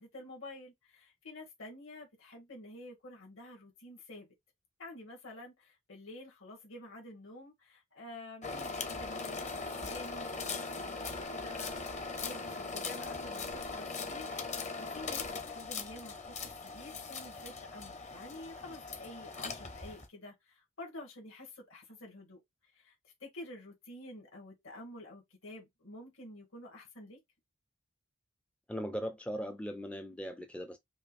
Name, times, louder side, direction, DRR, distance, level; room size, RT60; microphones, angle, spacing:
voice 1, 0.0-4.3 4.8-22.4 22.7-22.9 23.2-27.2, left 1 dB, 70° left, 1.8 m, -49 dB
sound 1, 8.4-20.1, left 4 dB, 35° left, 0.7 m, -40 dB
voice 2, 28.7-30.8, equal, 5° left, 0.3 m, -39 dB
5.2 x 2.3 x 2.5 m
head